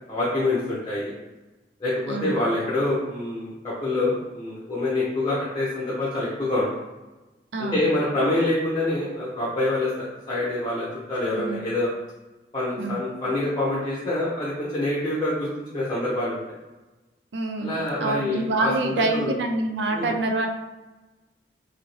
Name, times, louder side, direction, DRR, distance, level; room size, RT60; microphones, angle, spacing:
voice 1, 0.1-1.1 1.8-6.7 7.6-11.9 12.5-16.4 17.6-19.4 19.9-20.1, left 2 dB, 25° left, -7 dB, 0.7 m, -26 dB
voice 2, 7.5-7.9 11.3-11.6 12.8-13.0 17.3-20.5, right 2 dB, 85° right, 4 dB, 0.4 m, -26 dB
2.7 x 2.7 x 2.9 m, 1.1 s
head